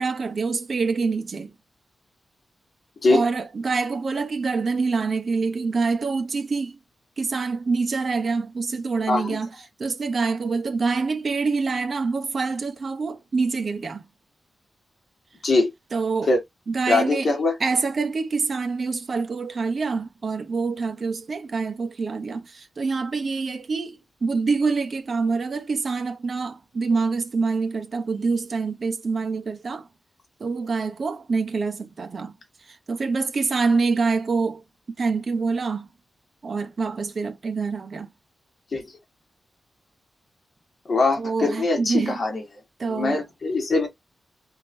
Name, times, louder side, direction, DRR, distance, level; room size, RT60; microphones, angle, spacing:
voice 1, 0.0-1.5 3.1-6.8 7.2-9.5 9.8-14.1 15.9-16.3 16.7-29.9 30.4-32.3 32.6-34.6 35.0-35.9 36.4-38.1 41.2-42.2 42.8-43.2, right 4 dB, 45° right, 0.8 m, -26 dB
voice 2, 9.1-9.4 15.4-15.7 16.3-16.4 16.9-17.5 38.7-38.9 40.9-42.4 42.8-43.9, left 3 dB, 45° left, 1.7 m, -22 dB
4.5 x 3.6 x 2.6 m
wide cardioid pair, 165°, 0 cm